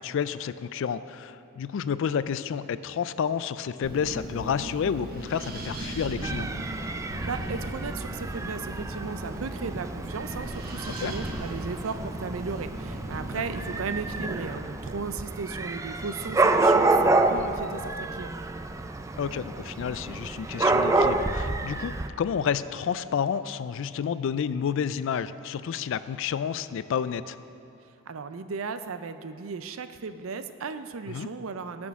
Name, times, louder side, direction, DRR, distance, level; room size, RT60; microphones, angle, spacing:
voice 1, 0.0-6.5 11.0-11.1 13.3-13.4 19.2-27.4 31.1-31.3, left 7 dB, 65° left, 15 dB, 0.3 m, -30 dB
Wind, 3.8-14.5, right 1 dB, 50° right, 1.1 m, -38 dB
Dog / Cat, 6.2-22.1, right 2 dB, 15° right, 0.3 m, -28 dB
voice 2, 7.0-18.3 28.1-31.9, right 4 dB, 75° right, 10 dB, 0.5 m, -36 dB
18.0 x 6.2 x 3.6 m, 2.7 s
head